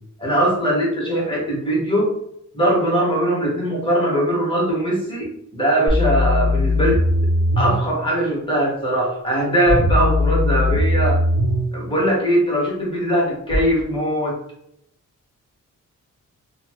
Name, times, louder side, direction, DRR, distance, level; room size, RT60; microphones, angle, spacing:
voice 1, 0.2-2.1 2.5-7.0 7.6-11.2 11.7-14.4, right 1 dB, 15° left, -4 dB, 1.4 m, -21 dB
sound 1, 5.9-7.8 9.7-11.7 13.5-13.6, left 1 dB, 25° right, 1.4 m, -19 dB
4.2 x 2.4 x 3.0 m, 0.73 s
wide cardioid pair, 145°, 32 cm